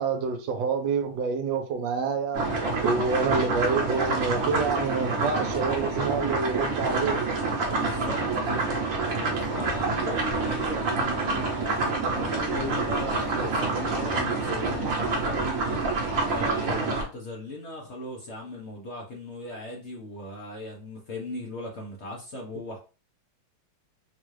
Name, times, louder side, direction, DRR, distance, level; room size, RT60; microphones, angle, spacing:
voice 1, 0.0-2.5 2.8-7.2, right 5 dB, 70° right, 1.3 m, -27 dB
sound 1, 2.3-17.0, right 3 dB, 50° right, 1.1 m, -27 dB
voice 2, 7.7-8.7 9.2-15.8 16.3-22.8, left 1 dB, 75° left, 0.6 m, -37 dB
3.9 x 2.4 x 3.1 m
omnidirectional pair, 2.2 m